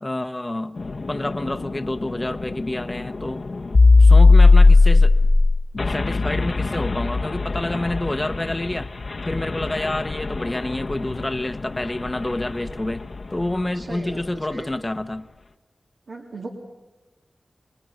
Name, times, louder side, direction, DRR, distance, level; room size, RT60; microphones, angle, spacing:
voice 1, 0.0-0.8 1.1-3.4 4.0-5.1 5.8-8.9 9.3-13.1 13.3-15.3, left 1 dB, 20° left, 9 dB, 1.0 m, -28 dB
sound 1, 0.8-13.5, left 3 dB, 55° left, 1.0 m, -18 dB
voice 2, 13.7-14.7 16.1-16.5, right 2 dB, 70° right, -1 dB, 2.9 m, -37 dB
26.5 x 20.0 x 9.3 m, 1.1 s
wide cardioid pair, 65°, 0 cm